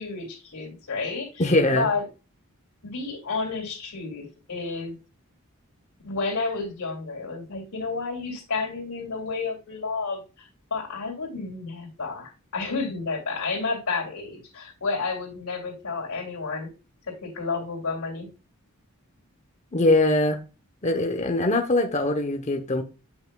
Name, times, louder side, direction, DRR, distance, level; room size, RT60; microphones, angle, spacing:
voice 1, 0.0-2.0 2.8-5.0 6.0-16.7 17.2-18.3, left 4 dB, 90° left, 2.6 m, -31 dB
voice 2, 1.4-1.9 19.7-20.4 20.8-22.8, left 2 dB, 30° left, 0.8 m, -22 dB
8.2 x 5.7 x 2.2 m
head